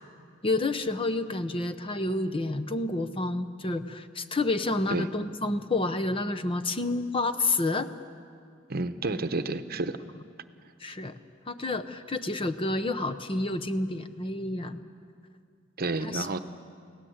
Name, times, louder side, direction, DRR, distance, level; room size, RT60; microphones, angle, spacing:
voice 1, 0.4-7.9 10.8-11.1 11.5-14.8 16.0-16.4, left 2 dB, 25° left, 11 dB, 0.8 m, -29 dB
voice 2, 8.7-10.0 15.8-16.4, right 2 dB, 50° right, 10 dB, 0.9 m, -30 dB
29.0 x 17.5 x 8.0 m, 2.3 s
head